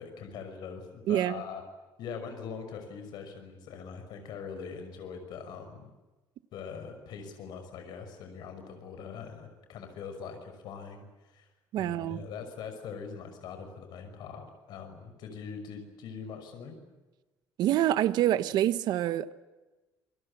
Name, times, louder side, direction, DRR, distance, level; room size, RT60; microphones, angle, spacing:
voice 1, 0.0-1.6 2.0-5.9 6.5-11.5 11.8-16.8, left 6 dB, 70° left, 5.9 m, -42 dB
voice 2, 1.1-1.4 11.7-12.2 17.6-19.3, right 12 dB, 70° right, 1.3 m, -26 dB
28.0 x 22.5 x 8.7 m
cardioid pair, 155°, 7 cm